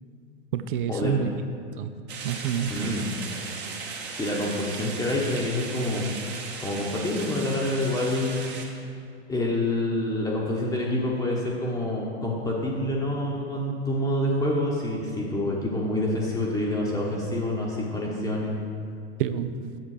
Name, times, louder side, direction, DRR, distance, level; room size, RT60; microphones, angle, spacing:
voice 1, 0.5-1.3 1.8-2.9 19.2-19.5, right 9 dB, 55° right, 11 dB, 0.6 m, -28 dB
sound 1, 2.1-8.7, right 4 dB, 30° right, 1.3 m, -37 dB
voice 2, 2.7-3.1 4.2-6.1 6.6-8.4 9.3-18.6, left 1 dB, 10° left, -4 dB, 1.1 m, -27 dB
7.9 x 7.3 x 4.9 m, 2.3 s
figure-of-eight pair, 95°, 33 cm